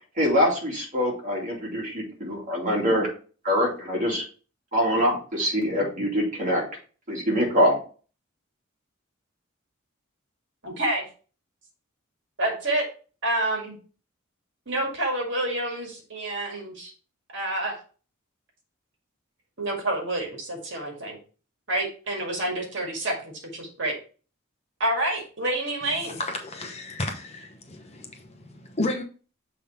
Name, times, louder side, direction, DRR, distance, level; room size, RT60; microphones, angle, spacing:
voice 1, 0.2-3.1 3.4-4.2 4.7-6.6 7.1-7.8, equal, 40° right, 2.6 m, -24 dB
voice 2, 10.6-11.0 12.4-12.9 13.2-13.8 14.7-16.9 17.3-17.7 19.6-21.2 21.7-24.0 24.8-26.2, right 1 dB, 60° right, 2.0 m, -28 dB
voice 3, 26.2-29.0, left 2 dB, 30° left, 0.9 m, -32 dB
7.1 x 3.7 x 4.2 m
head